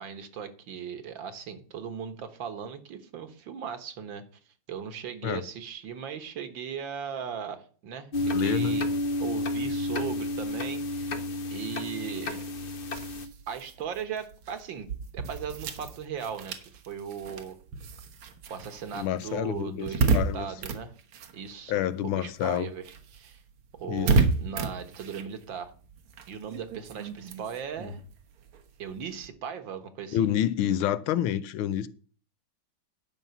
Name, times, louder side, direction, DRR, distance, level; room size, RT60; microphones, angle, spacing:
voice 1, 0.0-4.3 4.7-11.2 11.5-12.5 13.5-17.6 18.5-20.9 21.3-23.4 23.8-25.7 26.3-28.0 28.8-30.3, right 7 dB, 65° right, 1.9 m, -38 dB
sound 1, 8.1-13.3, left 1 dB, 70° left, 0.5 m, -30 dB
voice 2, 8.2-8.8 18.9-20.5 21.7-22.7 23.9-24.2 30.1-31.9, left 11 dB, 85° left, 1.5 m, -28 dB
sound 2, 12.2-22.1 22.3-29.3, right 4 dB, 85° right, 2.1 m, -32 dB
11.0 x 5.5 x 6.9 m
omnidirectional pair, 2.3 m